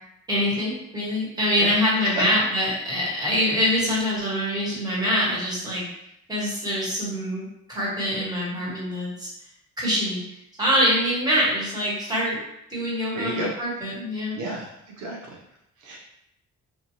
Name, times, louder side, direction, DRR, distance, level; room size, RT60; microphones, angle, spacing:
voice 1, 0.3-5.9 6.3-9.3 9.8-12.4 12.7-14.4, equal, 15° right, -7 dB, 1.4 m, -24 dB
voice 2, 13.1-13.5 14.3-15.4 15.8-16.0, right 2 dB, 75° right, -2 dB, 0.7 m, -32 dB
2.6 x 2.3 x 2.8 m, 0.81 s
cardioid pair, 90°, 30 cm